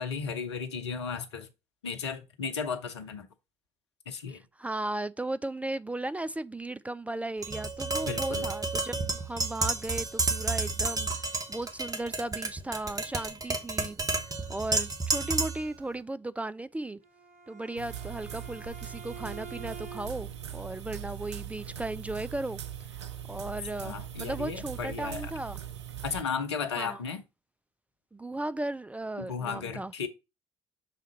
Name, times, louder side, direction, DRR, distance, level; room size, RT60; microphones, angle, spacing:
voice 1, 0.0-1.5 1.8-3.3 4.1-4.4 8.1-8.5 23.8-25.3 26.0-27.2 29.2-30.1, left 6 dB, 75° left, 0.8 m, -35 dB
voice 2, 4.3-11.1 11.5-14.0 14.5-17.0 17.5-22.6 23.3-25.6 26.8-27.0 28.1-29.9, right 2 dB, 10° right, 0.3 m, -36 dB
Tap, 7.4-15.7, right 3 dB, 25° right, 1.3 m, -31 dB
Bowed string instrument, 17.0-20.4, right 4 dB, 50° right, 2.7 m, -48 dB
sound 1, 17.8-26.2, right 10 dB, 80° right, 0.5 m, -40 dB
6.5 x 3.7 x 4.3 m
figure-of-eight pair, 50°, 14 cm